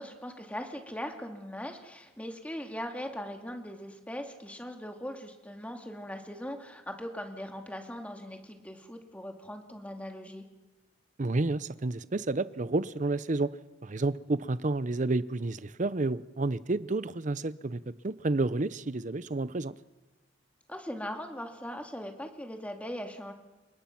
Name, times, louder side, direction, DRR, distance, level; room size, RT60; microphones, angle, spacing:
voice 1, 0.0-10.4 20.7-23.3, equal, 5° left, 2.3 m, -40 dB
voice 2, 11.2-13.5 13.8-19.7, right 2 dB, 40° right, 0.7 m, -30 dB
29.5 x 19.0 x 6.0 m
head